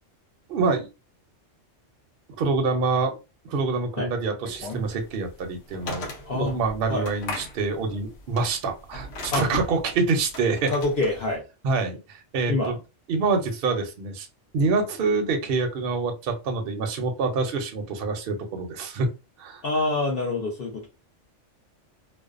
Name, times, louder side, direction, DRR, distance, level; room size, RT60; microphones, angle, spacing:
voice 1, 0.5-0.9 2.4-3.2 3.4-10.7 11.6-12.8 13.1-14.3 14.5-19.1 19.4-19.6, right 4 dB, 60° right, 5 dB, 0.7 m, -26 dB
sound 1, 4.4-11.3, left 2 dB, 80° left, 1.0 m, -37 dB
voice 2, 10.7-11.4 12.5-12.7 19.6-20.9, left 2 dB, 55° left, -1 dB, 0.8 m, -26 dB
2.5 x 2.1 x 2.4 m, 0.28 s
omnidirectional pair, 1.3 m